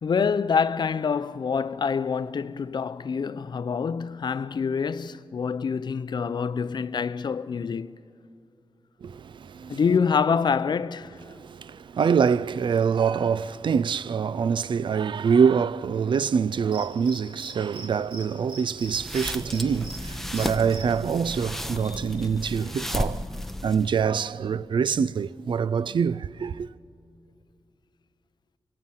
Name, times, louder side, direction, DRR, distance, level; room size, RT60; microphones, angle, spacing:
voice 1, 0.0-7.9 9.7-11.2 21.8-22.0, left 6 dB, 55° left, 0.5 m, -26 dB
voice 2, 9.0-9.8 11.3-23.2 23.6-26.7, right 6 dB, 65° right, 0.5 m, -25 dB
Cricket, 16.7-17.9 18.1-18.2 18.5-20.0 20.3-20.8, right 2 dB, 85° right, 3.8 m, -40 dB
sound 1, 18.8-24.0, left 1 dB, 5° left, 0.7 m, -34 dB
25.0 x 23.5 x 5.7 m
wide cardioid pair, 100°, 9 cm